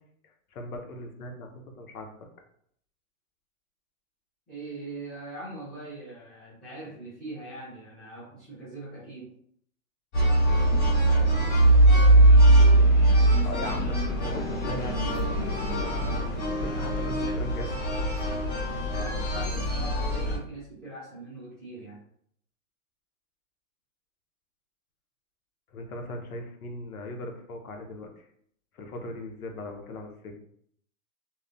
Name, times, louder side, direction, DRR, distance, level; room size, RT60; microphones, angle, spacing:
voice 1, 0.5-1.5 1.8-2.1 13.2-17.8 25.7-28.2 28.7-30.3, left 1 dB, 85° left, 3 dB, 0.8 m, -39 dB
voice 2, 4.5-9.3 18.9-22.0, right 2 dB, ahead, -12 dB, 0.6 m, -41 dB
sound 1, 10.1-20.4, right 1 dB, 30° left, 1.2 m, -21 dB
2.9 x 2.0 x 2.4 m, 0.66 s
hypercardioid pair, 155°, 43 cm